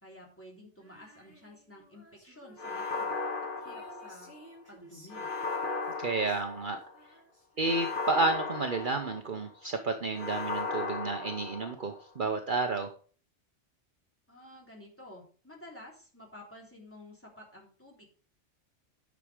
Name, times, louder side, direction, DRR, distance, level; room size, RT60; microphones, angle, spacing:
voice 1, 0.0-3.1 3.6-4.3 4.7-5.3 14.3-18.1, left 1 dB, 10° left, -2 dB, 3.5 m, -51 dB
Female singing, 0.8-8.1, right 1 dB, 10° right, 5.4 m, -56 dB
sound 1, 2.6-4.4 5.1-6.9 7.6-9.5 10.1-12.0, left 4 dB, 45° left, 1.8 m, -36 dB
voice 2, 6.0-6.8 7.6-12.9, right 3 dB, 45° right, 5 dB, 1.0 m, -31 dB
10.5 x 6.3 x 5.1 m, 0.40 s
omnidirectional pair, 1.2 m